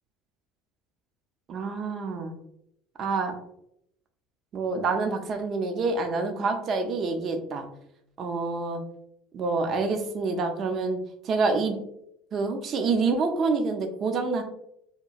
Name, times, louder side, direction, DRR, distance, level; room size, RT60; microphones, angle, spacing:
voice 1, 1.5-2.3 3.0-3.4 4.5-7.7 8.2-8.8 9.3-11.0 11.2-11.8 12.3-14.4, right 4 dB, 45° right, 5 dB, 0.5 m, -27 dB
2.9 x 2.1 x 2.4 m, 0.75 s
supercardioid pair, 90°, 0 cm